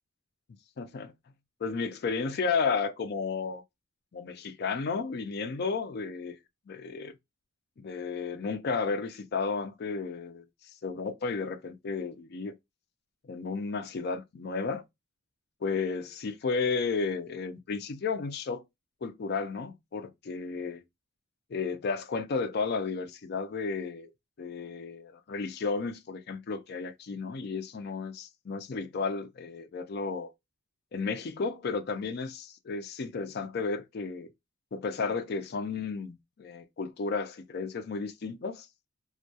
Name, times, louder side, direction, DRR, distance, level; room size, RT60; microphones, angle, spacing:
voice 1, 0.8-1.1 1.6-3.6 4.1-6.4 6.7-7.1 7.8-10.4 10.8-12.5 13.2-14.8 15.6-18.6 19.0-20.8 21.5-24.1 24.4-30.3 30.9-34.3 34.7-38.7, left 4 dB, 50° left, 0.4 m, -33 dB
2.2 x 2.2 x 2.7 m
head